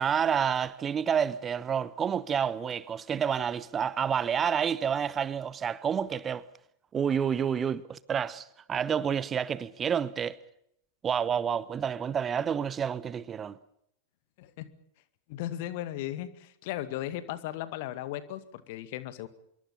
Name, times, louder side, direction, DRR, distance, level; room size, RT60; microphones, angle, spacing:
voice 1, 0.0-6.4 6.9-10.4 11.0-13.6, right 7 dB, 20° right, 0.9 m, -29 dB
voice 2, 14.4-14.7 15.3-19.3, left 13 dB, 50° left, 2.1 m, -36 dB
26.0 x 23.0 x 5.7 m
figure-of-eight pair, 90°, 0 cm